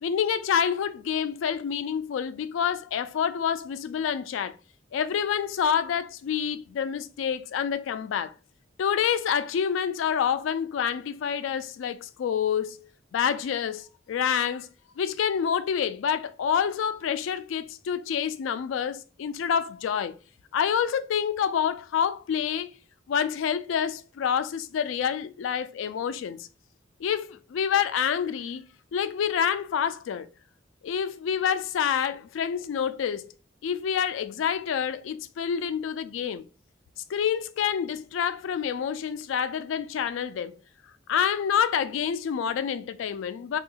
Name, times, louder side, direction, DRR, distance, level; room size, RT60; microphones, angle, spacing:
voice 1, 0.0-4.6 4.9-8.3 8.8-14.7 15.0-20.2 20.5-22.7 23.1-26.5 27.0-28.6 28.9-30.3 30.8-33.3 33.6-36.4 37.1-40.5 41.1-43.6, left 8 dB, 80° left, 0.3 m, -27 dB
3.4 x 2.3 x 2.8 m
head